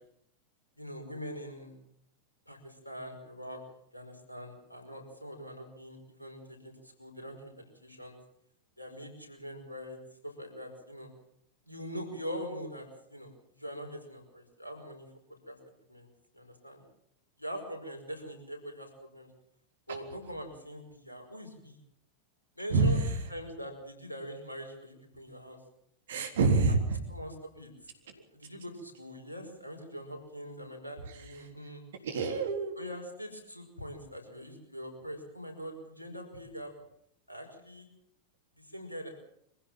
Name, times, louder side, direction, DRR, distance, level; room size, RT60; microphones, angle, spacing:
voice 1, 0.8-1.8 2.5-3.6 3.9-8.2 8.8-11.1 11.7-15.1 15.5-15.6 15.9-16.1 16.3-16.8 17.4-19.3 19.9-21.8 22.5-25.6 26.6-26.8 27.1-31.8 32.7-36.7 37.3-37.9 38.6-39.1, equal, 85° left, 3 dB, 5.2 m, -43 dB
voice 2, 22.7-23.2 26.1-27.0 32.0-32.7, right 3 dB, 60° right, 5 dB, 3.7 m, -26 dB
24.0 x 15.5 x 7.5 m, 0.70 s
figure-of-eight pair, 90°, 0 cm